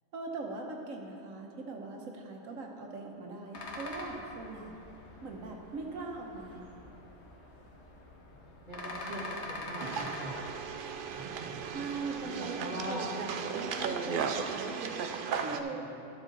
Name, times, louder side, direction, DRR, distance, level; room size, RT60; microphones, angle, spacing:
voice 1, 0.1-4.7 5.2-6.7 11.7-13.1 13.5-15.0 15.4-15.9, right 3 dB, 85° right, 1 dB, 1.4 m, -41 dB
sound 1, 3.5-12.1, left 1 dB, 60° left, 1.4 m, -45 dB
voice 2, 8.3-10.5 11.1-11.9 12.2-13.1 15.4-15.5, right 1 dB, 30° right, -10 dB, 1.6 m, -42 dB
sound 2, 9.8-15.6, right 6 dB, 60° right, 0.5 m, -36 dB
12.0 x 7.4 x 4.0 m, 2.9 s
omnidirectional pair, 1.4 m